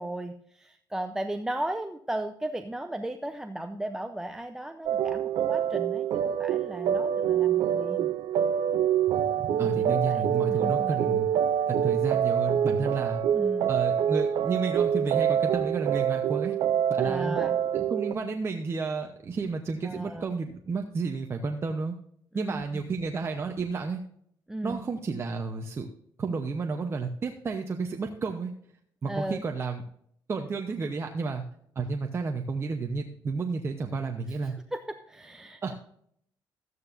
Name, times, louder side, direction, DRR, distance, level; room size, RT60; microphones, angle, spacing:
voice 1, 0.0-8.1 9.6-11.2 13.3-13.7 17.0-17.6 19.8-20.3 22.3-22.9 24.5-24.8 29.1-29.4 34.4-35.6, right 1 dB, 5° right, 6 dB, 0.6 m, -36 dB
sound 1, 4.9-18.1, right 9 dB, 70° right, 0.5 m, -26 dB
voice 2, 9.4-11.3 11.7-13.2 13.7-16.5 16.9-17.4 17.7-21.9 22.3-24.0 24.6-25.9 26.2-28.5 29.0-29.8 30.3-31.4 31.8-34.5 35.6-35.7, right 4 dB, 30° right, 4 dB, 0.9 m, -31 dB
13.5 x 9.5 x 2.6 m, 0.66 s
cardioid pair, 120°, 8 cm